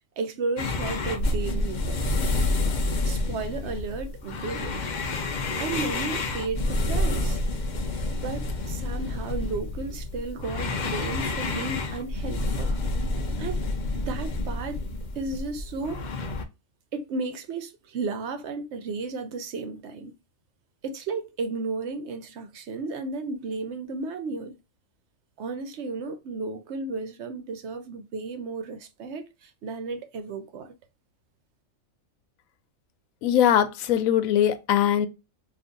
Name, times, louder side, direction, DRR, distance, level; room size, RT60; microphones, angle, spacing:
voice 1, 0.2-2.2 3.0-4.8 5.6-7.4 8.2-12.7 13.4-13.7 13.9-14.8 15.2-16.0 16.9-20.1 20.8-24.6 25.4-30.7, right 3 dB, 65° right, 0.8 m, -33 dB
sound 1, 0.6-16.4, left 2 dB, 60° left, 0.5 m, -29 dB
voice 2, 33.2-35.1, left 10 dB, 90° left, 1.0 m, -21 dB
2.6 x 2.5 x 3.6 m
omnidirectional pair, 1.4 m